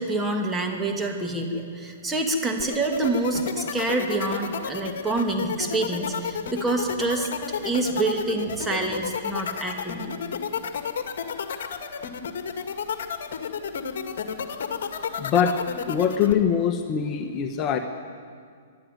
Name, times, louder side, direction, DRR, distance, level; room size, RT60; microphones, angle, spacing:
voice 1, 0.0-7.3 7.6-10.2, right 2 dB, 10° right, 1 dB, 2.6 m, -27 dB
sound 1, 2.6-16.3, left 7 dB, 65° left, 1.9 m, -31 dB
voice 2, 15.2-15.6 15.8-17.8, left 8 dB, 30° left, 5 dB, 1.3 m, -23 dB
24.0 x 12.0 x 9.5 m, 2.1 s
hypercardioid pair, 135°, 0 cm